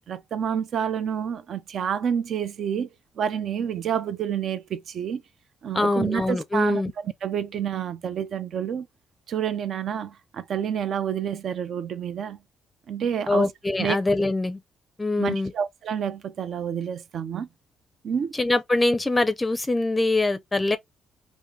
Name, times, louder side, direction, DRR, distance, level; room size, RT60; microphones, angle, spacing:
voice 1, 0.1-2.9 3.2-5.2 5.6-8.9 9.3-12.4 12.9-13.5 13.8-14.0 15.2-17.5 18.0-18.3, right 8 dB, 65° right, 0.5 m, -28 dB
voice 2, 5.7-6.9 13.3-14.6 15.0-15.5 18.3-20.8, left 2 dB, 20° left, 0.5 m, -23 dB
3.5 x 2.6 x 3.2 m
cardioid pair, 90°, 0 cm